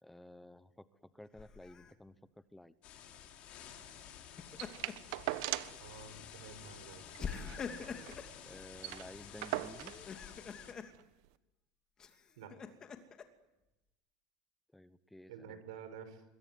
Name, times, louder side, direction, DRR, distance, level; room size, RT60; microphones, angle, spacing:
voice 1, 0.0-2.7 7.9-8.1 8.4-9.9 14.7-15.6, left 1 dB, 5° left, 14 dB, 1.0 m, -54 dB
Laughter, 1.4-1.9 4.2-5.1 5.6-5.7 7.2-8.4 9.9-10.9 12.0-13.2, left 6 dB, 25° left, 2.6 m, -44 dB
sound 1, 2.8-10.7, left 9 dB, 45° left, 4.8 m, -52 dB
sound 2, 4.6-5.9 6.2-6.3 6.6-6.7 7.1-8.2 8.5-8.6 8.8-10.1 10.9-11.0, right 17 dB, 70° right, 1.3 m, -40 dB
voice 2, 5.8-7.1 12.4-12.5 15.3-16.2, right 7 dB, 85° right, 11 dB, 5.8 m, -50 dB
26.5 x 22.0 x 9.6 m, 0.95 s
supercardioid pair, 135°, 3 cm